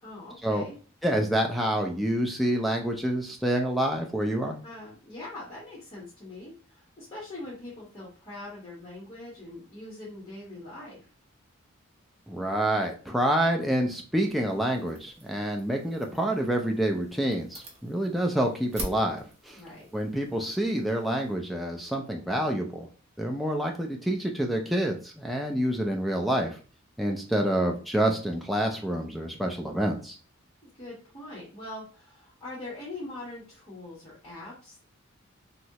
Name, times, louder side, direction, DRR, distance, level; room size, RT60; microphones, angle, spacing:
voice 1, 0.0-0.8 4.6-11.1 19.5-19.9 30.7-34.9, left 2 dB, 25° left, -9 dB, 1.2 m, -42 dB
voice 2, 1.0-4.6 12.3-19.6 19.9-22.9 23.2-26.6 27.0-30.2, right 1 dB, ahead, 2 dB, 0.3 m, -27 dB
sound 1, 14.2-21.4, right 1 dB, 30° right, 0.8 m, -45 dB
3.1 x 2.7 x 2.8 m, 0.38 s
head